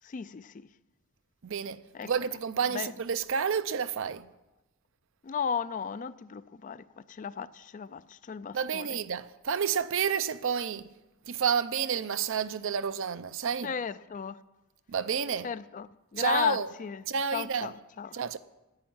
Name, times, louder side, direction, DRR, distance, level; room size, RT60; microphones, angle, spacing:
voice 1, 0.0-0.7 1.9-2.1 2.7-2.9 5.2-8.9 13.6-14.4 15.4-17.0 17.3-18.1, left 7 dB, 35° left, 0.3 m, -34 dB
voice 2, 1.4-4.3 8.5-10.9 11.3-13.7 14.9-15.5 16.2-16.7 17.1-17.7 18.1-18.4, right 7 dB, 60° right, 0.5 m, -30 dB
10.5 x 9.2 x 8.7 m
head